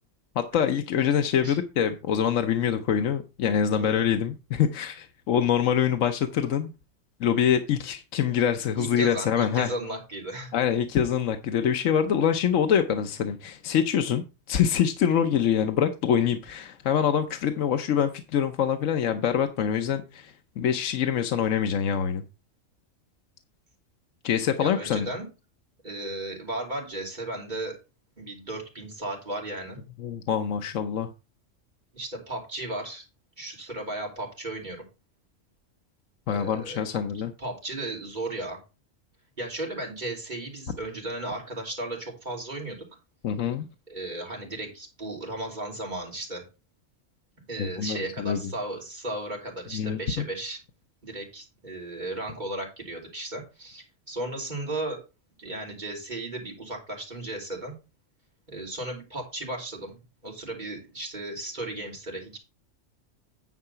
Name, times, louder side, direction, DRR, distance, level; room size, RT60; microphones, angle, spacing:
voice 1, 0.4-6.7 7.2-9.7 10.5-22.2 24.2-25.1 30.0-31.1 36.3-37.3 43.2-43.7 47.6-48.4 49.7-50.2, left 8 dB, 80° left, 1.1 m, -25 dB
voice 2, 8.8-10.5 24.6-25.3 25.8-27.8 28.2-29.8 31.9-33.0 33.4-34.9 36.3-38.6 39.4-42.9 43.9-46.4 47.5-50.6 51.0-55.0 55.4-57.7 58.5-60.0 60.2-62.4, right 2 dB, 35° right, 3.5 m, -35 dB
9.9 x 4.8 x 5.6 m
omnidirectional pair, 1.3 m